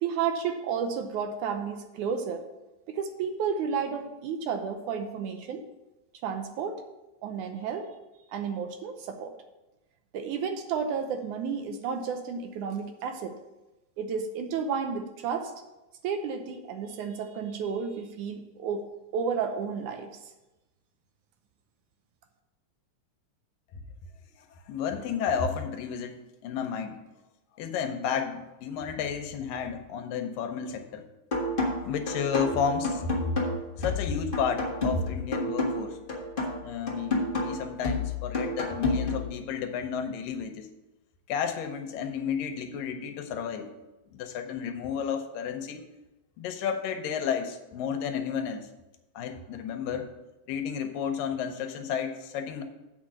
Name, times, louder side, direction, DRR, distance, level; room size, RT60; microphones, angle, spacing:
voice 1, 0.0-2.4 2.9-5.6 6.2-6.8 7.2-7.9 8.3-9.3 10.1-13.4 14.0-15.5 16.0-18.8 19.1-20.1, right 6 dB, 75° right, 6 dB, 2.1 m, -32 dB
voice 2, 24.4-26.2 26.4-27.0 27.6-31.0 31.8-33.4 33.8-36.0 36.6-40.7 41.3-43.7 44.1-45.8 46.4-48.7 49.2-50.1 50.5-52.6, left 7 dB, 85° left, 6 dB, 2.5 m, -32 dB
sound 1, 31.3-39.3, left 2 dB, 40° left, 0.7 m, -30 dB
7.9 x 5.1 x 7.5 m, 1.0 s
omnidirectional pair, 3.8 m